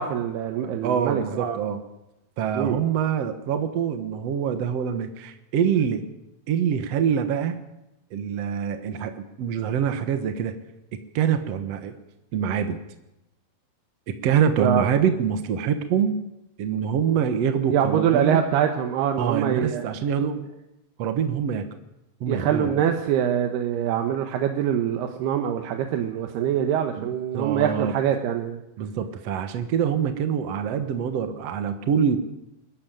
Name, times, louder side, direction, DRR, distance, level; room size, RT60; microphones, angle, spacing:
voice 1, 0.0-1.6 2.5-2.8 14.6-14.8 17.7-19.8 22.3-28.6, right 9 dB, 85° right, 5 dB, 3.2 m, -24 dB
voice 2, 0.8-1.8 2.4-6.1 6.5-7.6 8.1-10.6 11.1-12.0 12.3-12.8 14.2-16.2 16.6-18.4 19.2-20.5 21.0-21.7 22.2-22.8 27.0-27.9 28.8-32.2, right 8 dB, 60° right, 8 dB, 1.7 m, -25 dB
22.0 x 13.5 x 9.1 m, 0.91 s
omnidirectional pair, 4.5 m